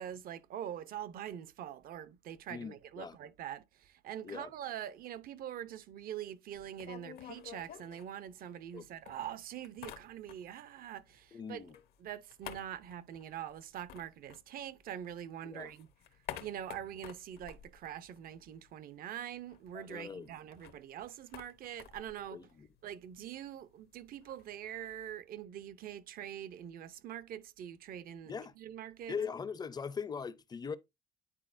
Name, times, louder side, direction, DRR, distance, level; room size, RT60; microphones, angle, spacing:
voice 1, 0.0-11.6 12.0-15.9 16.4-22.4 22.8-29.2, right 10 dB, 60° right, 0.6 m, -44 dB
voice 2, 2.5-3.2 4.2-4.5 8.7-8.9 11.3-11.7 15.4-15.7 19.7-20.3 22.3-22.7 28.3-28.5 29.1-30.8, left 6 dB, 25° left, 0.5 m, -41 dB
sound 1, 6.5-8.7 9.1-10.7 11.0-15.1 15.4-18.7 19.0-19.1 19.3-25.1, left 10 dB, 70° left, 0.8 m, -51 dB
9.9 x 4.2 x 2.5 m
cardioid pair, 110°, 17 cm